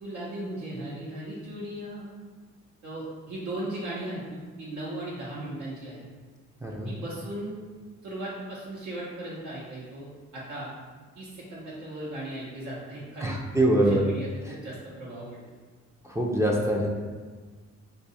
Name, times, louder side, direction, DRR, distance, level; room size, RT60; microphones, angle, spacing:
voice 1, 0.0-2.1 2.8-6.0 6.8-7.5 8.0-10.7 11.2-13.4 13.7-15.5, right 1 dB, 75° right, -7 dB, 0.8 m, -37 dB
voice 2, 6.6-6.9 13.2-14.0 16.0-17.0, right 1 dB, 10° right, -2 dB, 0.4 m, -24 dB
2.7 x 2.3 x 4.0 m, 1.4 s
cardioid pair, 90°, 30 cm